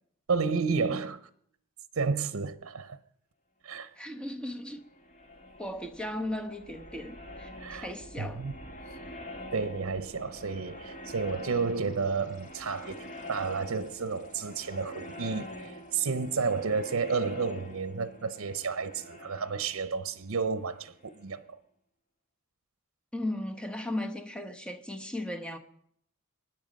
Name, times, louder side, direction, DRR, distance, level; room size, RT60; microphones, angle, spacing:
voice 1, 0.3-1.2 1.9-3.0 3.6-3.9 7.6-8.5 9.5-21.6, right 5 dB, 75° right, 0.7 m, -31 dB
voice 2, 4.0-4.8 5.6-8.4 23.1-25.6, left 1 dB, 5° left, 1.1 m, -36 dB
sound 1, 4.7-21.4, left 1 dB, 35° left, 2.1 m, -46 dB
24.0 x 10.0 x 5.3 m
head